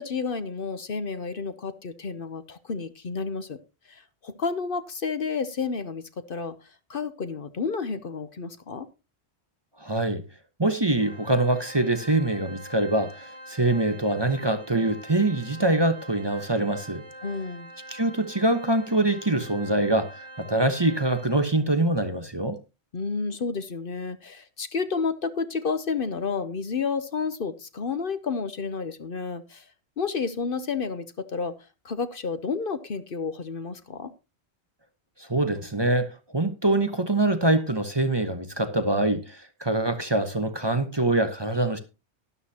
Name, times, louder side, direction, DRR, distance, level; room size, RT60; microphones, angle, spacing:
voice 1, 0.0-3.6 3.9-6.0 6.3-8.9 17.2-17.7 22.9-29.6 30.0-31.5 31.8-34.1, left 5 dB, 55° left, 1.0 m, -31 dB
voice 2, 9.8-10.2 10.6-17.0 17.9-22.6 35.2-41.8, right 2 dB, 25° right, 1.0 m, -24 dB
Organ, 11.0-21.7, right 1 dB, 30° left, 5.2 m, -45 dB
12.5 x 11.5 x 2.8 m
omnidirectional pair, 1.1 m